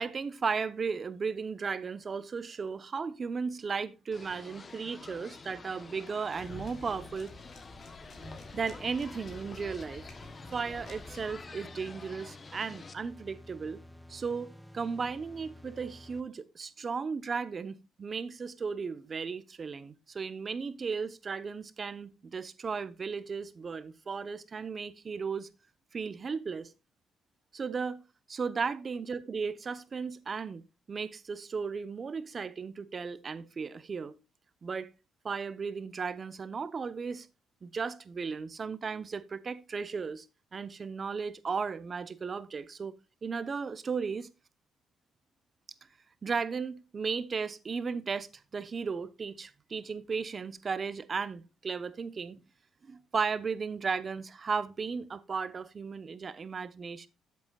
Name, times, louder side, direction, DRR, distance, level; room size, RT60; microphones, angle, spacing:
voice 1, 0.0-7.3 8.5-10.1 10.5-13.8 14.1-25.5 25.9-26.7 27.5-28.0 28.3-30.6 30.9-34.2 34.6-34.9 35.2-37.3 37.6-40.2 40.5-42.9 43.2-44.3 46.2-48.3 48.5-52.4 52.8-57.1, right 5 dB, 40° right, 0.9 m, -35 dB
sound 1, 4.1-12.9, left 4 dB, 35° left, 1.0 m, -49 dB
sound 2, 6.3-11.4, left 2 dB, 55° left, 3.4 m, -50 dB
sound 3, 8.2-16.2, left 1 dB, 5° left, 0.8 m, -52 dB
12.5 x 8.1 x 2.4 m
cardioid pair, 90°, 0 cm